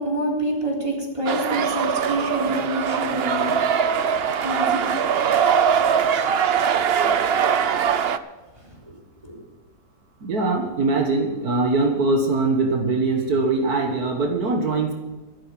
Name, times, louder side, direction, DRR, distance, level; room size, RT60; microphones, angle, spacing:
voice 1, 0.0-3.5 4.4-4.8 9.3-9.4, right 1 dB, 20° right, -2 dB, 3.7 m, -26 dB
sound 1, 1.3-8.2, right 7 dB, 55° right, 0.7 m, -21 dB
voice 2, 10.2-14.9, right 3 dB, 70° right, 3 dB, 2.0 m, -22 dB
14.0 x 12.0 x 5.9 m, 1.2 s
omnidirectional pair, 1.7 m